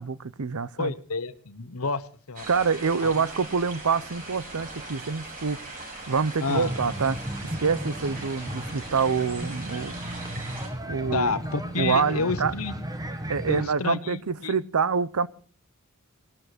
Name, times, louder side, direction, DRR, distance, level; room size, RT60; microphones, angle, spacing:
voice 1, 0.0-0.9 2.5-5.6 6.1-7.2 7.4-10.1 10.9-11.3 11.8-12.5 13.3-15.3, right 5 dB, 70° right, 0.7 m, -26 dB
voice 2, 0.8-2.5 3.0-3.1 6.4-6.7 11.1-12.7 13.5-14.5, left 4 dB, 70° left, 1.1 m, -29 dB
sound 1, 2.3-10.7, right 2 dB, 40° right, 6.7 m, -40 dB
sound 2, 6.5-13.6, right 1 dB, 15° right, 1.6 m, -35 dB
19.5 x 12.5 x 5.1 m
head